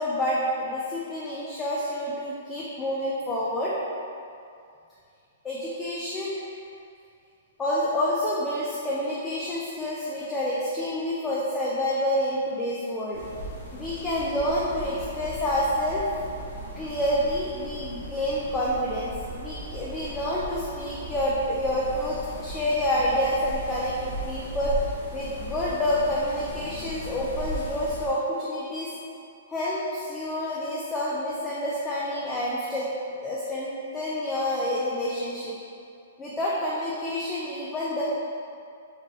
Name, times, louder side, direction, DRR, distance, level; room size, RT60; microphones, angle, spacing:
voice 1, 0.0-3.8 5.4-6.4 7.6-13.2 13.7-16.1 16.8-24.7 25.1-28.9 29.5-32.9 33.2-35.5 36.2-38.0, left 1 dB, 10° left, -7 dB, 0.3 m, -28 dB
sound 1, 13.1-28.1, right 1 dB, 60° left, 0.9 m, -37 dB
3.3 x 2.2 x 3.8 m, 2.4 s
hypercardioid pair, 170°, 0 cm